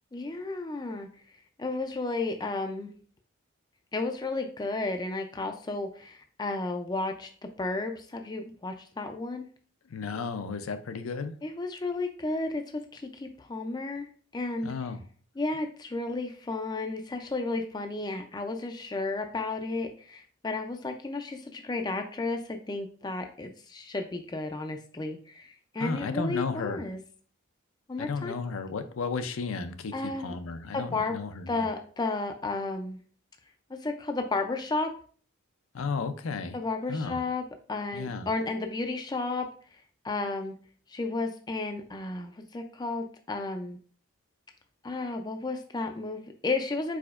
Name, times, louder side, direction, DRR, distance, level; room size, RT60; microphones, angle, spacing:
voice 1, 0.1-1.1 1.6-2.9 3.9-7.3 7.6-9.5 11.4-14.7 15.4-27.0 27.9-28.3 29.9-30.4 30.7-31.2 31.5-33.0 33.7-34.9 36.5-37.4 37.7-39.5 39.7-40.6 40.9-43.8 44.8-47.0, left 3 dB, 20° left, 5 dB, 0.3 m, -33 dB
voice 2, 9.9-11.3 14.6-15.0 25.8-26.8 28.0-31.7 35.7-36.6 36.9-37.2 37.9-38.3, left 4 dB, 75° left, 9 dB, 0.5 m, -33 dB
4.8 x 4.2 x 2.4 m, 0.43 s
head